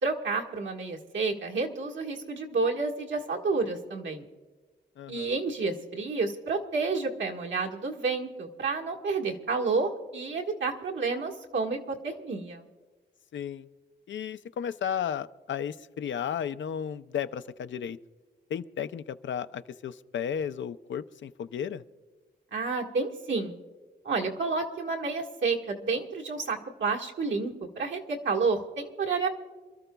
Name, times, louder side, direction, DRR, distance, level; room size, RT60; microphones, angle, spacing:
voice 1, 0.0-4.2 5.1-12.7 22.5-23.5 24.0-29.3, right 4 dB, 80° right, 0 dB, 1.5 m, -30 dB
voice 2, 5.0-5.3 13.3-13.7 14.1-18.0 18.5-21.8, left 8 dB, 80° left, 12 dB, 0.5 m, -34 dB
28.0 x 13.5 x 2.3 m, 1.3 s
wide cardioid pair, 150°, 19 cm